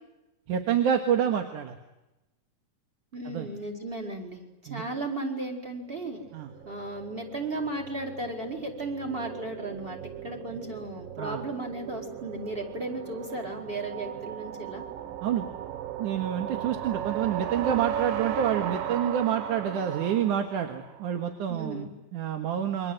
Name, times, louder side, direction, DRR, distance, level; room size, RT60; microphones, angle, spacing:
voice 1, 0.5-1.8 3.3-3.5 4.7-4.8 6.3-6.5 11.2-11.4 15.2-15.5 16.0-22.9, right 9 dB, 70° right, 6 dB, 3.0 m, -28 dB
voice 2, 3.1-6.3 6.6-14.8 21.5-21.9, right 2 dB, 15° right, 3 dB, 4.5 m, -35 dB
sound 1, 6.0-21.2, right 10 dB, 90° right, 3.0 m, -37 dB
28.5 x 25.0 x 8.0 m, 0.98 s
omnidirectional pair, 3.9 m